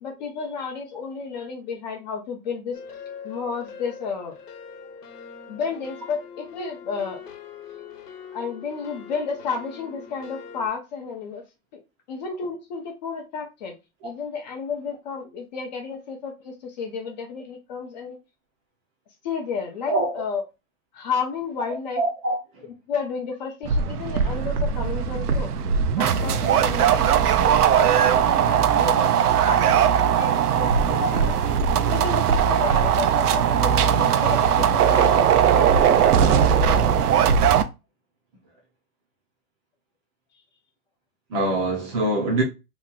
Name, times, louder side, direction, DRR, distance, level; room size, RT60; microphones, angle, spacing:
voice 1, 0.0-2.8 3.2-4.3 5.5-7.2 8.3-11.4 11.7-11.8 12.1-13.8 14.0-18.2 19.2-20.4 20.9-22.0 22.9-25.5 26.0-29.1 29.5-29.9 30.2-31.3 31.9-36.9, left 5 dB, 30° left, 0.6 m, -32 dB
sound 1, 2.7-10.7, left 6 dB, 80° left, 1.0 m, -42 dB
voice 2, 19.9-20.2 21.9-22.7 28.9-29.1 30.9-31.1 41.3-42.4, right 2 dB, 20° right, 0.6 m, -24 dB
sound 2, 23.7-37.6, right 8 dB, 90° right, 0.6 m, -19 dB
3.0 x 2.3 x 3.7 m
hypercardioid pair, 150°, 45 cm